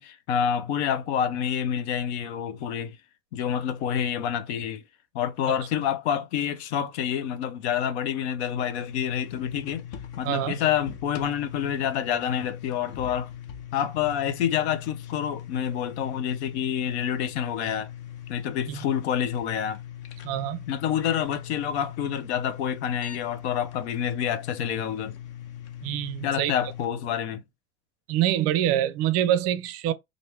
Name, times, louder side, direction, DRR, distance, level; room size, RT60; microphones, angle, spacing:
voice 1, 0.0-3.0 3.3-4.8 5.1-9.9 10.2-13.3 13.7-17.9 18.3-19.8 20.7-25.2 26.2-27.4, left 9 dB, 85° left, 0.7 m, -28 dB
sound 1, 8.6-26.9, left 10 dB, 50° left, 0.6 m, -41 dB
voice 2, 10.2-10.6 18.7-18.8 20.2-20.6 25.8-26.5 28.1-29.9, right 12 dB, 50° right, 0.4 m, -25 dB
3.0 x 2.6 x 3.2 m
supercardioid pair, 125°, 32 cm